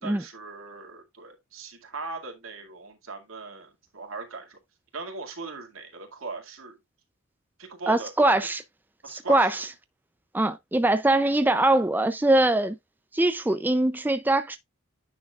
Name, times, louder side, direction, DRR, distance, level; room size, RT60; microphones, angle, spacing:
voice 1, 0.0-4.6 4.9-6.8 7.6-8.1 9.0-9.6, right 3 dB, 80° right, 2.2 m, -39 dB
voice 2, 7.9-8.6 9.1-9.7 10.3-12.8 13.1-14.6, right 2 dB, 10° right, 0.4 m, -22 dB
9.5 x 6.2 x 2.4 m
head